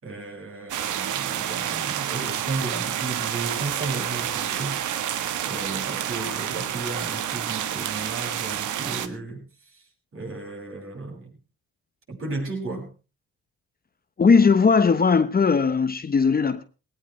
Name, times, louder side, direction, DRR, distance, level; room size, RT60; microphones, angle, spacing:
voice 1, 0.0-4.8 5.5-9.8 10.1-11.4 12.1-12.9, right 3 dB, 45° right, 6.5 m, -34 dB
sound 1, 0.7-9.1, right 10 dB, 75° right, 1.4 m, -29 dB
voice 2, 14.2-16.6, left 5 dB, 30° left, 1.1 m, -18 dB
18.5 x 17.5 x 3.2 m
cardioid pair, 90°, 30 cm